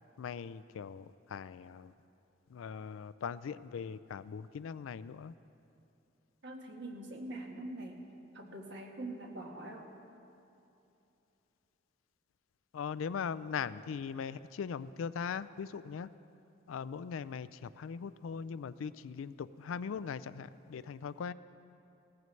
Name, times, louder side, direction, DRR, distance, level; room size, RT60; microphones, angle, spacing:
voice 1, 0.2-1.9 2.5-5.3 12.7-16.1 16.7-21.3, left 6 dB, 80° left, 16 dB, 0.4 m, -40 dB
voice 2, 6.4-8.0 8.3-9.8, right 1 dB, 60° right, 1 dB, 1.5 m, -43 dB
17.5 x 14.5 x 3.2 m, 2.8 s
head